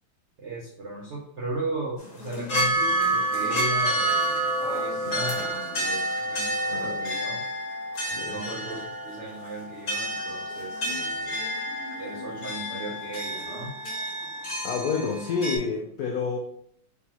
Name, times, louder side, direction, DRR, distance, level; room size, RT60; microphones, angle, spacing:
voice 1, 0.4-7.4 8.3-11.4 12.0-13.8, right 1 dB, 70° right, -4 dB, 0.6 m, -36 dB
sound 1, 2.0-15.6, right 1 dB, 45° left, 1.5 m, -29 dB
voice 2, 6.7-7.1 8.1-8.4 14.6-16.4, left 5 dB, 75° left, 0 dB, 0.8 m, -29 dB
4.0 x 3.5 x 2.8 m, 0.66 s
omnidirectional pair, 2.2 m